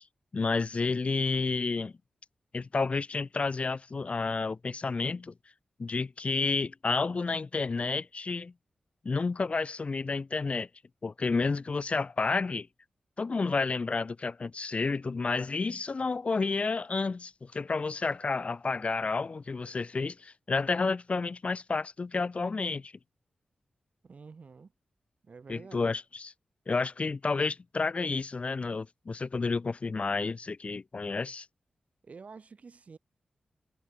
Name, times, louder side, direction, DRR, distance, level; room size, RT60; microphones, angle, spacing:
voice 1, 0.3-1.9 2.5-5.3 5.8-8.5 9.0-10.7 11.0-12.7 13.2-22.9 25.5-26.3 26.7-31.5, left 4 dB, 50° left, 2.2 m, -30 dB
voice 2, 24.0-24.7 25.2-25.9 32.0-33.0, right 5 dB, 60° right, 6.3 m, -48 dB
supercardioid pair, 40°, 3 cm